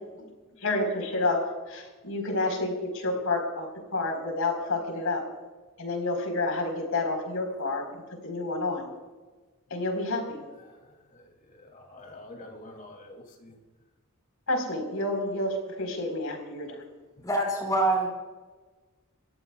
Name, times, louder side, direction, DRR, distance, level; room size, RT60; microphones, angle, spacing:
voice 1, 0.6-1.4 1.7-3.7 3.9-5.2 5.8-8.9 9.7-10.4 14.5-16.8, left 2 dB, 70° left, 3 dB, 4.4 m, -29 dB
voice 2, 10.6-13.6 17.2-17.3, left 1 dB, 40° left, 2 dB, 3.0 m, -48 dB
voice 3, 17.2-18.1, right 2 dB, 15° left, 0 dB, 5.2 m, -25 dB
29.0 x 14.5 x 2.4 m, 1.3 s
head